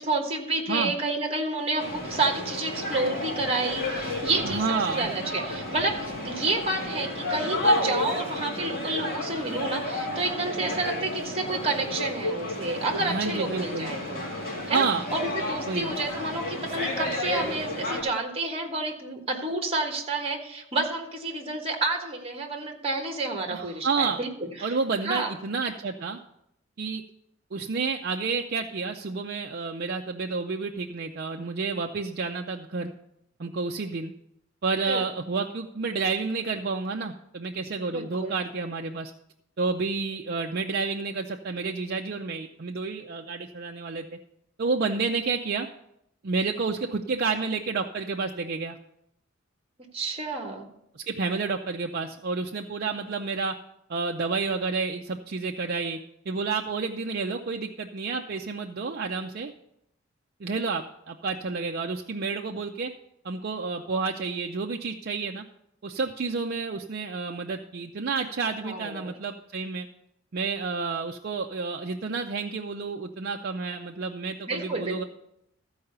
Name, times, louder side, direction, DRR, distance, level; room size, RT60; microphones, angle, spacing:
voice 1, 0.0-14.2 14.7-24.7 25.0-25.3 34.8-35.1 37.9-38.3 49.9-50.7 68.6-69.1 74.5-75.0, right 2 dB, 30° right, 3 dB, 1.4 m, -30 dB
sound 1, 1.8-18.0, left 1 dB, 45° left, 2.3 m, -31 dB
voice 2, 4.4-5.1 13.0-13.9 14.7-15.0 15.7-15.9 23.5-24.2 24.6-26.2 26.8-27.0 27.5-32.9 33.4-34.1 34.6-39.1 39.6-44.1 44.6-45.7 46.2-48.8 50.9-53.5 53.9-56.0 56.3-59.5 60.4-62.9 63.2-65.4 65.8-69.9 70.3-75.0, right 4 dB, 50° right, 2 dB, 0.5 m, -30 dB
14.0 x 4.8 x 6.7 m, 0.78 s
head